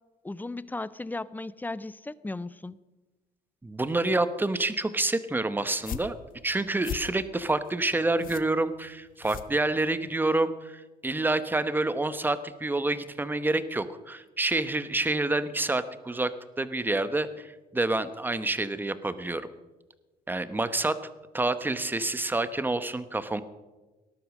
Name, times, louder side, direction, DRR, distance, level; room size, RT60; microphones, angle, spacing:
voice 1, 0.2-2.8, left 2 dB, 10° left, 18 dB, 0.5 m, -36 dB
voice 2, 3.6-16.3 16.6-19.5 20.3-20.9 21.3-23.4, right 2 dB, 10° right, 12 dB, 1.0 m, -28 dB
sound 1, 5.6-10.1, left 10 dB, 55° left, 0.8 m, -41 dB
18.5 x 11.5 x 6.4 m, 1.2 s
cardioid pair, 110°, 17 cm